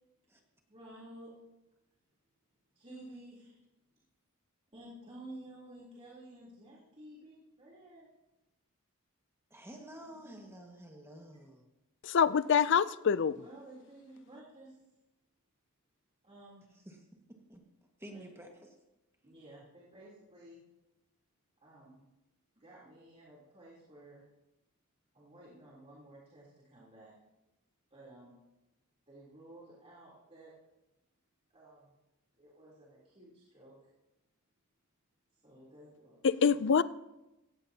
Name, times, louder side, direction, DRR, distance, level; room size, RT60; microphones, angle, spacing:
voice 1, 0.7-1.3 2.7-3.6 4.7-8.1 10.2-10.3 13.3-14.8 16.2-16.7 18.1-18.3 19.2-20.6 21.6-22.0 22.5-24.2 25.1-27.1 27.9-28.3 29.1-30.5 31.5-31.9 32.4-33.7 35.4-36.2, right 1 dB, 30° right, 3.4 m, -53 dB
voice 2, 9.5-11.6 16.8-17.0 17.3-17.6 18.0-18.5, right 1 dB, 10° right, 1.7 m, -50 dB
voice 3, 12.0-13.4 36.2-36.8, left 6 dB, 55° left, 0.5 m, -25 dB
17.0 x 15.5 x 2.9 m
head